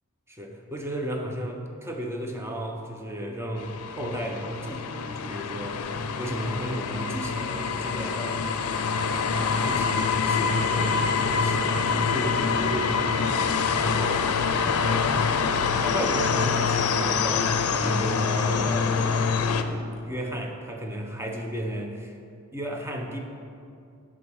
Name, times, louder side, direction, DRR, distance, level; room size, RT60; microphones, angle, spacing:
voice 1, 0.3-8.5 9.1-14.2 14.7-15.4 15.8-22.2 22.5-23.2, right 1 dB, 10° right, 2 dB, 0.7 m, -34 dB
sound 1, 3.6-19.6, left 5 dB, 85° left, 0.5 m, -25 dB
11.0 x 3.7 x 6.3 m, 2.4 s
head